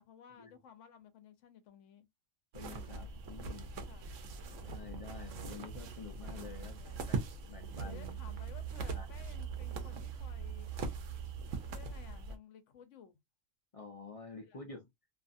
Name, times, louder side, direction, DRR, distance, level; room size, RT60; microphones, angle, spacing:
voice 1, 0.0-2.1 3.9-4.2 6.4-7.0 7.8-10.7 11.2-11.4 11.7-13.2 14.5-14.6, left 8 dB, 70° left, 1.0 m, -56 dB
voice 2, 2.5-3.7 4.6-6.8 7.1-7.2 7.4-8.2 9.0-9.1 13.7-14.9, left 4 dB, 45° left, 0.4 m, -49 dB
sound 1, 2.5-12.4, right 5 dB, 70° right, 1.0 m, -41 dB
2.7 x 2.4 x 2.5 m
omnidirectional pair, 1.4 m